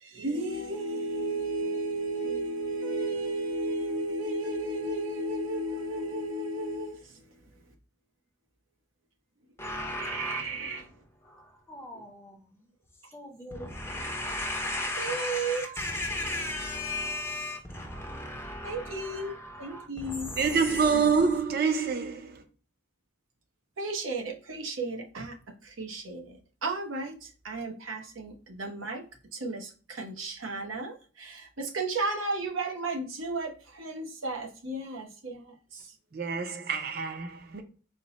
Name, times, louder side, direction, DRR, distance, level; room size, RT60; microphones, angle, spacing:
voice 1, 0.0-7.0 10.0-10.8 15.0-15.7 18.6-20.3 20.9-21.3 23.8-25.4 25.6-29.0 29.3-35.4 35.7-35.8, right 2 dB, 90° right, 0.8 m, -33 dB
voice 2, 9.6-10.9 11.2-12.7 13.1-21.4, left 1 dB, 10° left, 0.5 m, -36 dB
voice 3, 20.4-22.3 36.1-37.6, right 5 dB, 50° right, 0.5 m, -26 dB
4.2 x 2.1 x 2.9 m
head